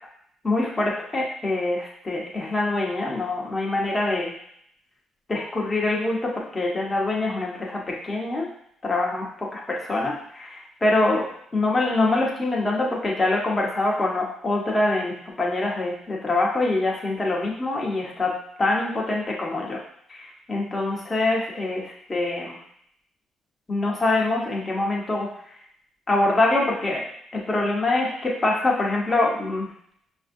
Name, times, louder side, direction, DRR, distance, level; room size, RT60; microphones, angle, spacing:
voice 1, 0.4-4.3 5.3-8.5 8.8-19.8 20.1-22.6 23.7-25.3 26.1-27.0 27.3-29.7, left 2 dB, 25° left, -3 dB, 1.1 m, -24 dB
5.3 x 2.6 x 2.6 m, 0.69 s
cardioid pair, 90°, 0 cm